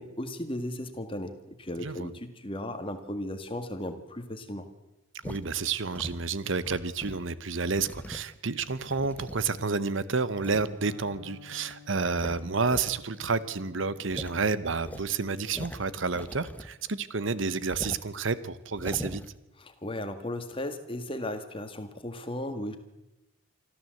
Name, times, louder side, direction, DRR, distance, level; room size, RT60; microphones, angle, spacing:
voice 1, 0.0-4.7 19.6-22.8, left 1 dB, 25° left, 8 dB, 1.9 m, -36 dB
voice 2, 1.8-2.1 5.2-19.3, right 4 dB, 65° right, 16 dB, 0.9 m, -30 dB
sound 1, 5.2-5.4 5.9-7.3 7.7-9.7 10.4-10.7 11.1-11.2 11.6-11.7 12.1-12.9 13.2-13.3 13.6-13.7 14.1-14.3 14.8-16.9 17.2-17.3 17.7-18.1 18.7-19.3, equal, 5° left, 0.8 m, -41 dB
Electric guitar, 10.8-18.6, left 5 dB, 85° right, 3.7 m, -55 dB
25.5 x 14.0 x 7.8 m, 0.98 s
head